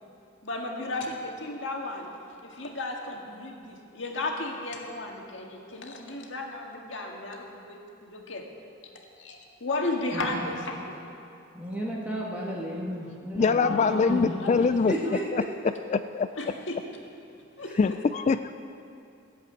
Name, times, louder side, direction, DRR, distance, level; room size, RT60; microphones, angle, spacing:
voice 1, 0.4-2.1 2.4-8.5 9.2-10.9 13.0-13.1 13.6-14.7 15.1-15.2 16.4-16.8 17.6-17.8, left 2 dB, 70° left, 1 dB, 1.9 m, -34 dB
voice 2, 10.1-10.5 11.5-14.3 14.9-15.5, right 1 dB, 10° right, -4 dB, 1.7 m, -33 dB
voice 3, 13.4-14.9 15.3-15.4 15.9-16.3 17.8-18.5, left 5 dB, 35° left, 11 dB, 0.3 m, -23 dB
15.0 x 7.9 x 9.0 m, 2.5 s
head